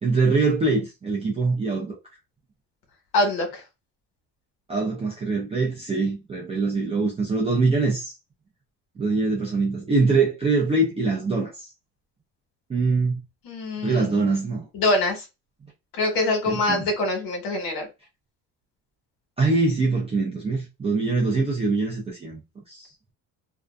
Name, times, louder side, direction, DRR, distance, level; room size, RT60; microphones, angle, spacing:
voice 1, 0.0-2.0 4.7-8.2 9.0-11.7 12.7-13.2 13.8-14.7 16.5-16.8 19.4-22.4 22.7-22.9, right 3 dB, 20° right, 0.4 m, -23 dB
voice 2, 3.1-3.6 13.4-14.3 14.7-15.2 16.0-17.9, left 2 dB, 85° left, 1.2 m, -24 dB
2.5 x 2.3 x 2.2 m
cardioid pair, 175°, 34 cm